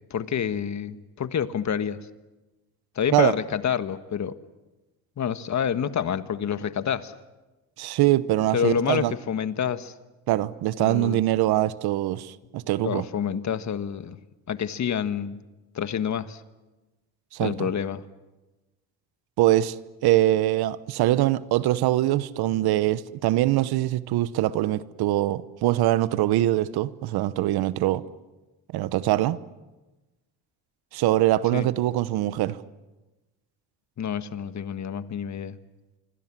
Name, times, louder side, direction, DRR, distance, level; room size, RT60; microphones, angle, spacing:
voice 1, 0.1-2.0 2.9-4.4 5.2-7.1 8.5-9.9 10.8-11.2 12.8-14.2 14.5-15.4 15.7-16.4 17.4-18.0 31.5-31.7 34.0-35.6, left 8 dB, 50° left, 1.5 m, -28 dB
voice 2, 7.8-9.1 10.3-13.0 17.3-17.7 19.4-19.7 20.0-28.0 28.7-29.4 30.9-32.6, right 15 dB, 80° right, 1.0 m, -23 dB
26.0 x 25.0 x 7.5 m
cardioid pair, 85°, 37 cm